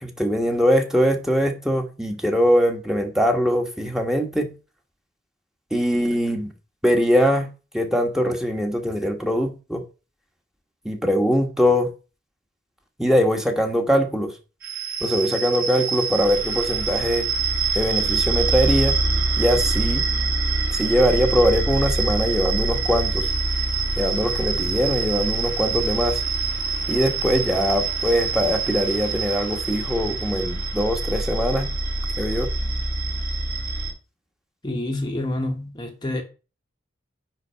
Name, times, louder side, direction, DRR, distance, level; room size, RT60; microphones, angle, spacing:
voice 1, 0.0-4.5 5.7-6.5 6.8-7.5 7.7-9.8 10.8-11.9 13.0-14.3 15.0-17.3 17.7-19.0 19.4-20.1 20.7-23.3 24.0-26.2 26.9-31.7 32.2-32.5, equal, ahead, 1.4 m, -22 dB
sound 1, 14.6-33.9, right 3 dB, 50° right, 4.5 m, -25 dB
voice 2, 34.6-36.2, left 1 dB, 20° left, 1.1 m, -27 dB
10.0 x 4.1 x 6.9 m
head